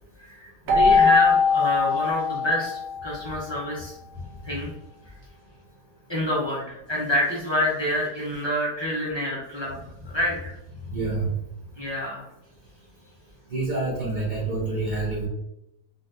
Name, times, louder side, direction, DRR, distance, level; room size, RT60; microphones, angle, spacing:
voice 1, 0.2-4.0 4.4-4.7 6.1-9.8 10.0-10.5 11.8-12.3, equal, 45° left, -5 dB, 0.3 m, -27 dB
Keyboard (musical), 0.7-3.3, left 5 dB, 90° right, 1.3 m, -21 dB
voice 2, 10.9-11.3 13.5-15.3, right 2 dB, 50° right, -5 dB, 0.5 m, -27 dB
3.9 x 2.3 x 2.5 m, 0.84 s
omnidirectional pair, 1.8 m